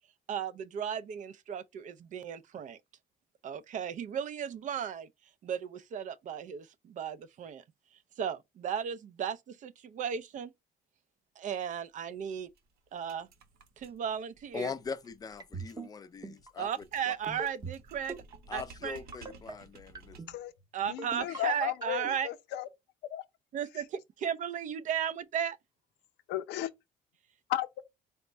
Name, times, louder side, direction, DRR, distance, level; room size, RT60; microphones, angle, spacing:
voice 1, 0.3-2.8 3.4-5.1 5.4-7.6 8.2-10.5 11.4-12.5 12.9-13.3 13.8-14.7 16.6-18.1 18.5-19.0 20.7-22.3 23.5-23.8 24.2-25.6, right 8 dB, 50° right, 0.4 m, -35 dB
sound 1, 11.5-11.7 12.0-12.1 12.3-20.5, right 3 dB, 65° right, 0.9 m, -56 dB
voice 2, 14.5-16.7 17.0-17.1 18.5-20.2, left 5 dB, 20° left, 0.4 m, -41 dB
sound 2, 15.4-15.9 16.2-16.5 17.3-17.8 18.1-18.4 19.1-19.5 19.9-20.3 21.0-21.4 21.8-22.1, right 4 dB, 25° right, 0.8 m, -40 dB
voice 3, 20.8-22.7 23.1-23.2 26.3-26.7 27.5-27.8, left 13 dB, 85° left, 0.6 m, -34 dB
4.1 x 2.1 x 4.3 m
cardioid pair, 110°, 17 cm